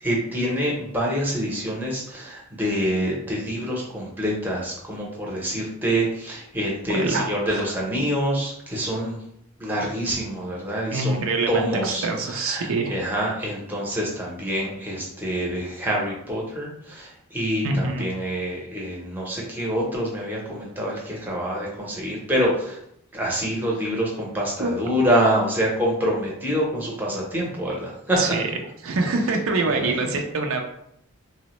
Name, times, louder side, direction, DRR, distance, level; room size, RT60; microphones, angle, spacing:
voice 1, 0.0-9.2 9.6-11.2 11.5-22.8 23.1-28.2 29.7-29.9, equal, 10° right, -3 dB, 0.6 m, -26 dB
voice 2, 6.9-7.7 10.9-12.9 17.6-18.1 24.6-24.7 28.2-28.4 28.8-30.6, right 3 dB, 75° right, 3 dB, 0.5 m, -25 dB
3.3 x 2.0 x 2.9 m, 0.74 s
head